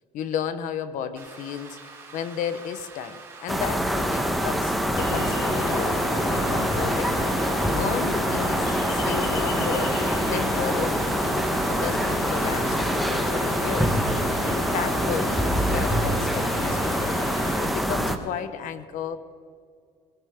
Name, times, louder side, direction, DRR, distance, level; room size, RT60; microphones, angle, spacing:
voice 1, 0.1-1.8 2.1-6.0 6.3-7.2 7.8-10.0 10.3-11.4 11.7-17.1 17.6-19.2, left 8 dB, 60° left, 12 dB, 1.2 m, -33 dB
Rain, 1.2-17.8, right 4 dB, 15° right, 5.4 m, -45 dB
sound 1, 3.5-18.2, equal, ahead, 1.2 m, -25 dB
Ocean, 5.0-17.5, left 2 dB, 80° left, 5.0 m, -32 dB
19.5 x 17.5 x 3.7 m, 2.2 s
cardioid pair, 120°, 15 cm